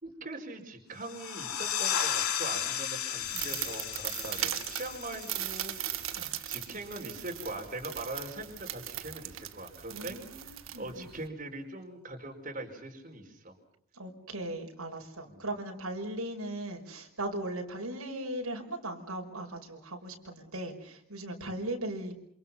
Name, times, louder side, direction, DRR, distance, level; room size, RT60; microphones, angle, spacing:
voice 1, 0.0-10.2 10.4-13.6 15.2-15.4, right 2 dB, 35° right, 1 dB, 4.8 m, -42 dB
sound 1, 1.0-6.4, left 9 dB, 80° left, 2.2 m, -34 dB
sound 2, 3.2-11.3, right 12 dB, 65° right, 1.3 m, -38 dB
voice 2, 9.9-11.1 13.9-22.1, right 1 dB, 80° right, 1 dB, 5.6 m, -38 dB
28.5 x 28.0 x 5.8 m, 0.67 s
head